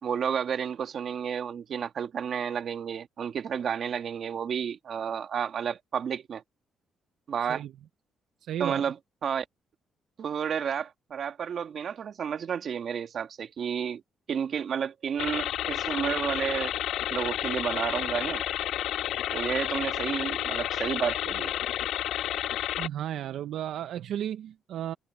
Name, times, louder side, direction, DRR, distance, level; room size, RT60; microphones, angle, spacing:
voice 1, 0.0-6.4 7.3-7.6 8.6-8.9 9.2-9.5 10.2-14.0 14.3-16.7 17.1-18.4 19.3-21.5, right 7 dB, 55° right, 1.9 m, -31 dB
voice 2, 8.4-8.9 22.8-24.9, right 11 dB, 75° right, 0.7 m, -34 dB
sound 1, 15.2-22.9, left 12 dB, 80° left, 0.5 m, -31 dB
cardioid pair, 90°, 0 cm